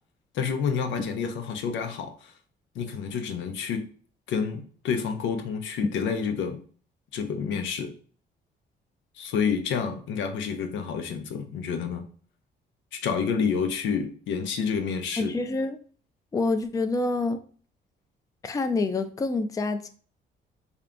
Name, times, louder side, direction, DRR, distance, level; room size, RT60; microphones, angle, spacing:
voice 1, 0.3-2.3 2.7-3.9 4.3-6.6 7.1-8.0 9.2-12.1 12.9-15.3, left 6 dB, 85° left, 0.6 m, -29 dB
voice 2, 15.2-15.8 16.3-17.4 18.4-19.9, left 3 dB, 20° left, 0.4 m, -27 dB
3.5 x 2.3 x 3.6 m
cardioid pair, 90°, 19 cm